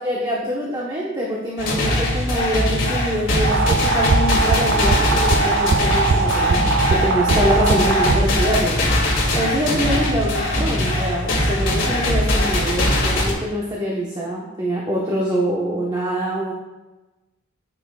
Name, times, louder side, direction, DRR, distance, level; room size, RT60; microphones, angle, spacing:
voice 1, 0.0-16.5, equal, 20° right, -4 dB, 1.2 m, -24 dB
sound 1, 1.6-13.3, left 1 dB, 65° left, 2.4 m, -21 dB
sound 2, 3.4-8.5, right 4 dB, 55° right, 0.4 m, -20 dB
9.9 x 8.4 x 2.4 m, 1.1 s
head